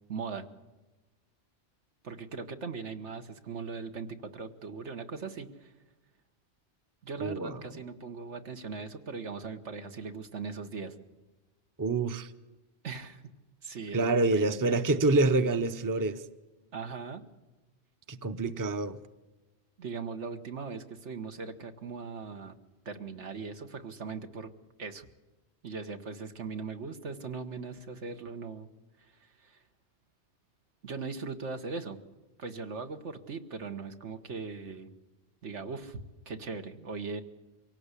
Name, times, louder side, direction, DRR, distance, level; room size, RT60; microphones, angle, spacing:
voice 1, 0.1-0.5 2.0-5.7 7.0-10.9 12.8-13.2 13.6-14.8 16.7-17.2 19.8-22.6 22.8-24.5 24.8-25.1 25.6-28.7 29.0-29.6 30.8-32.0 32.4-34.9 35.4-36.0 36.2-37.2, right 4 dB, 80° right, 1.7 m, -39 dB
voice 2, 7.2-7.6 11.8-12.3 13.9-16.2 18.1-19.0, right 2 dB, 20° right, 0.7 m, -27 dB
24.0 x 17.5 x 8.3 m
omnidirectional pair, 1.2 m